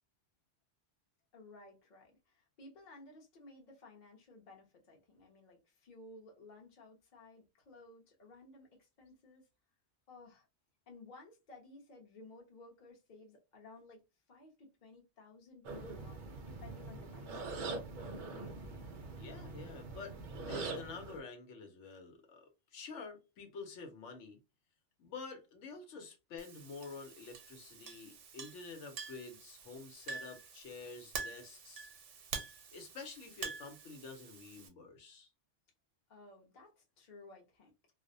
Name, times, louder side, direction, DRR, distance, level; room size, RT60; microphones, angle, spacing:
voice 1, 1.3-9.5 10.1-10.5 10.9-14.0 14.3-17.7 18.3-18.8 36.1-37.9, left 2 dB, 45° left, 0.7 m, -57 dB
sound 1, 15.6-21.2, right 3 dB, 55° right, 0.5 m, -43 dB
voice 2, 19.2-24.4 25.0-31.9 32.7-35.3, left 4 dB, 85° left, 1.0 m, -49 dB
Chink clink, 26.4-34.7, right 5 dB, 80° right, 1.0 m, -47 dB
2.4 x 2.0 x 2.5 m
omnidirectional pair, 1.2 m